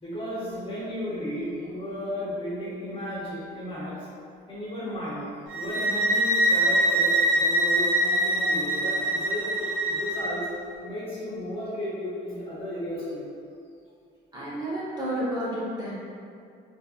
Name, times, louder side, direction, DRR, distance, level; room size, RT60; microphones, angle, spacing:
voice 1, 0.0-4.0 4.5-5.2 5.5-10.5 10.8-13.3, equal, 25° left, -8 dB, 1.0 m, -34 dB
sound 1, 5.5-10.4, right 1 dB, 75° right, 1.1 m, -24 dB
voice 2, 14.3-16.1, right 1 dB, 20° right, -8 dB, 1.2 m, -31 dB
4.1 x 2.7 x 2.5 m, 2.4 s
cardioid pair, 90°, 20 cm